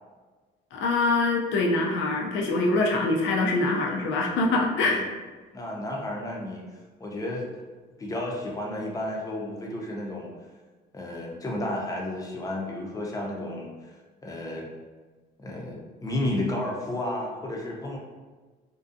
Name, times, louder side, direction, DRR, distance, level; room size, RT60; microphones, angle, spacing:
voice 1, 0.7-5.1, left 2 dB, 75° left, 0 dB, 0.4 m, -24 dB
voice 2, 5.5-7.6 8.0-10.3 10.9-13.9 14.2-14.7 15.4-18.0, left 1 dB, 15° left, -2 dB, 0.5 m, -32 dB
2.6 x 2.3 x 2.4 m, 1.3 s
cardioid pair, 90°, 20 cm